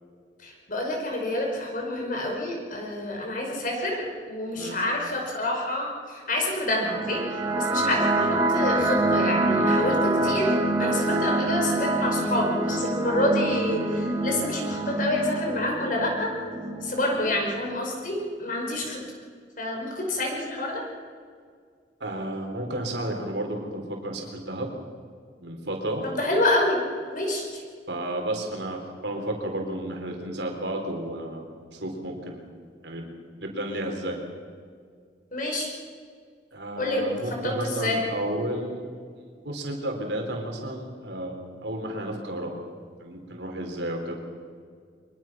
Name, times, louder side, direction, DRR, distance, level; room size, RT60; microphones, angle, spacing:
voice 1, 0.4-16.3 16.8-19.0 19.6-20.8 26.0-26.8 27.1-27.6 35.3-35.7 36.8-38.0, left 1 dB, 50° left, 0 dB, 5.5 m, -28 dB
sound 1, 6.8-17.8, right 2 dB, 20° right, 2.2 m, -26 dB
voice 2, 22.0-24.7 25.4-26.0 27.9-32.5 32.8-33.1 33.4-34.2 36.5-38.8 39.1-42.5 43.0-44.2, right 1 dB, 75° right, 2 dB, 4.0 m, -32 dB
23.5 x 22.5 x 6.1 m, 2.1 s
head